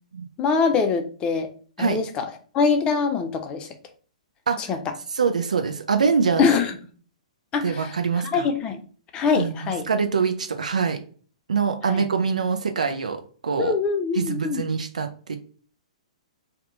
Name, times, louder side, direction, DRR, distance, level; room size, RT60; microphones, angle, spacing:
voice 1, 0.4-1.5 1.8-2.3 2.5-3.7 4.6-4.8 6.4-6.8 7.5-8.0 8.3-8.8 9.1-9.9 11.8-12.0 13.6-14.6, left 5 dB, 25° left, 5 dB, 0.6 m, -23 dB
voice 2, 5.1-6.4 7.6-8.5 9.3-11.0 11.5-13.7 14.2-15.4, right 5 dB, 80° right, 6 dB, 0.5 m, -24 dB
2.7 x 2.1 x 3.9 m, 0.42 s
figure-of-eight pair, 120°, 4 cm